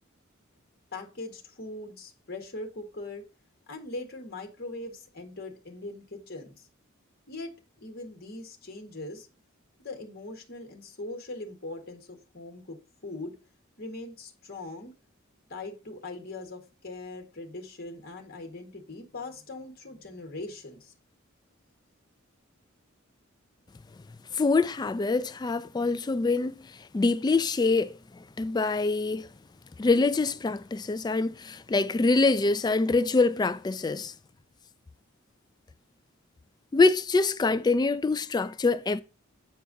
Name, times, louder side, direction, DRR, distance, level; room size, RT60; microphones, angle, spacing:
voice 1, 0.9-3.2 3.7-6.7 7.3-7.5 7.8-9.3 9.8-13.4 13.8-14.9 15.5-20.9, left 2 dB, 50° left, 1.7 m, -41 dB
voice 2, 24.3-26.7 26.9-28.0 28.4-29.3 29.8-34.1 36.7-39.0, left 3 dB, 20° left, 0.3 m, -25 dB
8.5 x 4.6 x 4.0 m
head